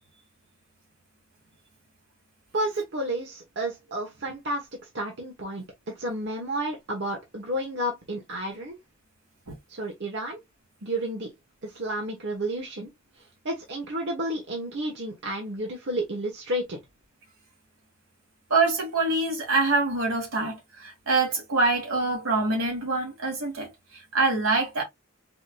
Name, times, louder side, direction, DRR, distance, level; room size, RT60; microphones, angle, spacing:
voice 1, 2.5-4.7 4.9-5.6 6.0-8.8 9.7-10.4 10.8-11.3 11.6-12.9 13.4-16.8, right 1 dB, 55° right, 1.0 m, -31 dB
voice 2, 18.5-24.8, right 3 dB, 80° right, 1.9 m, -25 dB
4.8 x 2.7 x 2.3 m
head